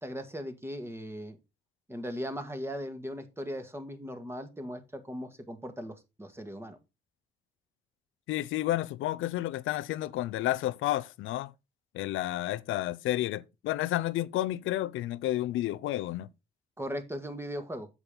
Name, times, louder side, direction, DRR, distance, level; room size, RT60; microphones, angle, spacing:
voice 1, 0.0-1.4 1.9-6.8 16.8-17.9, equal, 10° right, 1.9 m, -38 dB
voice 2, 8.3-11.5 11.9-16.3, left 14 dB, 85° left, 0.5 m, -31 dB
8.0 x 7.3 x 3.9 m
cardioid pair, 90°, 20 cm